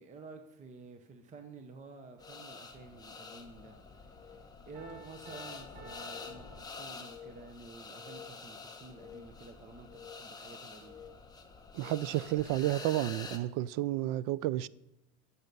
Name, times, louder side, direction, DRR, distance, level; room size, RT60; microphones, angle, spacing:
voice 1, 0.0-11.1, right 3 dB, 20° right, 0.7 m, -51 dB
sound 1, 2.2-13.4, left 4 dB, 10° left, 1.0 m, -47 dB
Piano, 4.8-7.3, right 2 dB, 80° right, 2.8 m, -54 dB
voice 2, 11.7-14.7, right 15 dB, 55° right, 0.5 m, -31 dB
15.0 x 6.9 x 5.3 m
cardioid pair, 150°, 39 cm